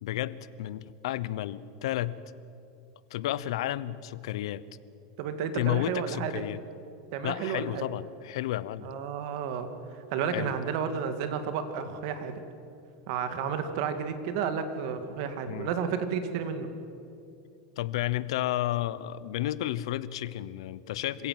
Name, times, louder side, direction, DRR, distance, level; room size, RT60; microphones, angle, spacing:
voice 1, 0.0-2.2 3.1-4.6 5.5-6.6 7.2-8.9 10.3-10.5 15.5-15.7 17.8-21.3, left 14 dB, 75° left, 17 dB, 0.8 m, -32 dB
voice 2, 5.2-6.3 7.1-7.8 8.8-12.4 13.1-16.7, right 7 dB, 60° right, 9 dB, 2.2 m, -32 dB
26.5 x 17.0 x 7.7 m, 2.7 s
supercardioid pair, 140°, 3 cm